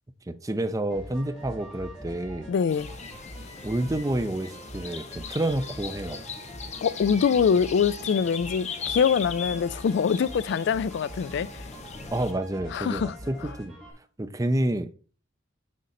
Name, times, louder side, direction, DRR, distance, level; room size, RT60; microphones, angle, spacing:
voice 1, 0.3-2.5 3.6-6.2 12.1-13.8 14.2-14.9, right 1 dB, 15° right, 0.5 m, -29 dB
sound 1, 0.9-13.9, equal, ahead, 3.3 m, -43 dB
voice 2, 2.5-2.9 6.8-11.5 12.7-13.1, left 6 dB, 60° left, 0.3 m, -24 dB
sound 2, 2.7-12.3, left 6 dB, 35° left, 0.7 m, -39 dB
6.5 x 5.2 x 4.2 m
head